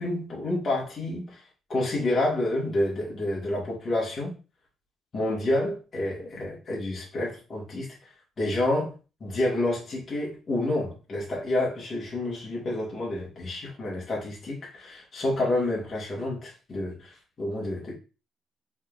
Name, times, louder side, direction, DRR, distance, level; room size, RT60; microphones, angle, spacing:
voice 1, 0.0-1.4 1.7-4.4 5.1-7.9 8.4-8.9 9.2-17.9, left 1 dB, 45° left, -4 dB, 2.0 m, -29 dB
4.2 x 3.5 x 2.6 m, 0.33 s
cardioid pair, 90°, 0 cm